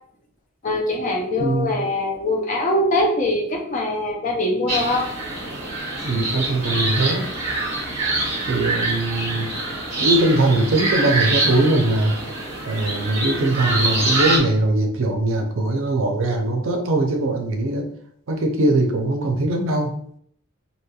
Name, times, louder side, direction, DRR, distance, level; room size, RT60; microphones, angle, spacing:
voice 1, 0.6-5.1, left 1 dB, 35° left, 2 dB, 0.4 m, -22 dB
voice 2, 1.4-1.7 6.0-7.3 8.5-9.5 10.0-12.2 12.7-17.9 18.3-19.9, right 2 dB, 70° right, 3 dB, 0.5 m, -21 dB
sound 1, 4.7-14.4, right 2 dB, 30° right, 1.3 m, -25 dB
3.0 x 2.8 x 2.3 m, 0.66 s
head